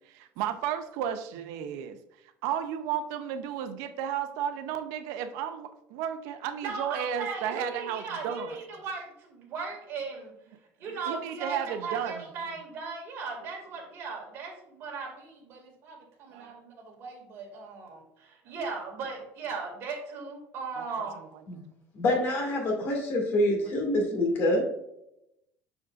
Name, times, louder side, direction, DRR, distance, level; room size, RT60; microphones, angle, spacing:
voice 1, 0.1-2.0 2.4-8.6 11.1-12.3 16.3-16.6 20.7-20.9, right 9 dB, 85° right, 8 dB, 0.6 m, -33 dB
voice 2, 6.6-10.3 10.8-21.2, right 4 dB, 50° right, 0 dB, 2.2 m, -38 dB
voice 3, 21.9-24.6, left 1 dB, 45° left, 0 dB, 2.1 m, -26 dB
7.0 x 6.3 x 2.5 m, 0.82 s
cardioid pair, 165°, 5 cm